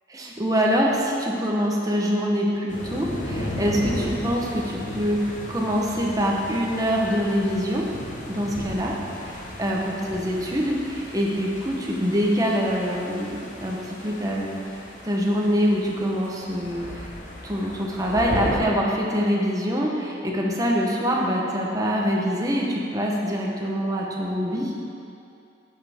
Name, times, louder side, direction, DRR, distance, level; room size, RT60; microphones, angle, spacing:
voice 1, 0.1-7.9 8.3-14.6 15.0-17.1 17.4-24.7, equal, 20° right, -2 dB, 0.9 m, -25 dB
sound 1, 2.7-18.6, left 1 dB, 40° left, 1.0 m, -35 dB
10.5 x 6.2 x 3.6 m, 2.6 s
head